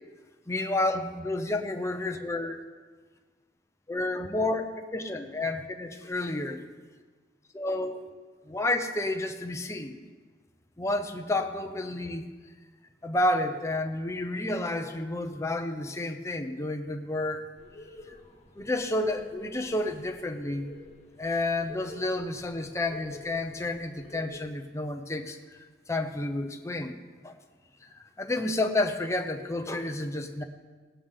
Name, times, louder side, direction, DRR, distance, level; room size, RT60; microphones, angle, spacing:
voice 1, 0.5-2.6 3.9-6.6 7.5-8.1 8.5-10.0 10.8-12.3 13.0-17.4 18.6-20.7 21.2-25.4 25.9-26.9 27.2-27.3 28.2-30.4, left 2 dB, 15° left, 5 dB, 0.8 m, -30 dB
sound 1, 17.6-24.4, left 1 dB, 40° left, 1.3 m, -49 dB
19.0 x 8.4 x 3.7 m, 1.4 s
head